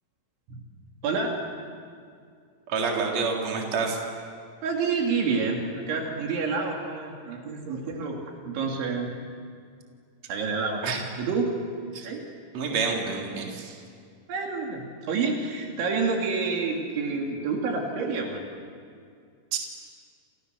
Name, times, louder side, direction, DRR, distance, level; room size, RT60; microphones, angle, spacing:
voice 1, 1.0-1.5 4.6-8.2 8.4-9.1 10.3-10.9 11.2-11.5 12.0-12.2 14.3-18.4, right 4 dB, 70° right, 0 dB, 4.9 m, -28 dB
voice 2, 2.7-4.0 10.8-11.0 11.9-12.1 12.5-13.8 19.5-19.6, right 4 dB, 35° right, 0 dB, 4.3 m, -28 dB
29.5 x 29.5 x 6.9 m, 2.2 s
omnidirectional pair, 5.8 m